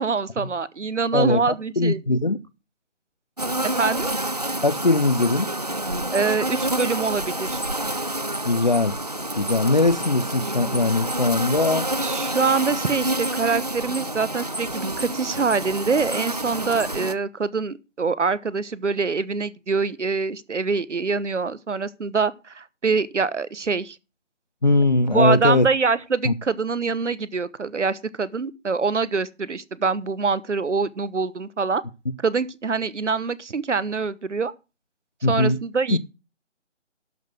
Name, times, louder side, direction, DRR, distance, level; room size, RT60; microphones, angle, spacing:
voice 1, 0.0-2.2 3.7-4.1 6.1-7.6 12.0-24.0 25.1-31.8 32.2-34.5 35.3-36.0, right 4 dB, 70° right, 1.1 m, -25 dB
voice 2, 1.1-2.4 4.6-5.5 8.4-9.0 9.3-11.9 24.6-25.7 26.2-26.3 35.2-35.6 35.9-36.0, left 2 dB, 40° left, 0.5 m, -20 dB
sound 1, 3.4-17.1, right 1 dB, 35° right, 0.4 m, -28 dB
12.0 x 5.9 x 6.3 m
figure-of-eight pair, 155°, 37 cm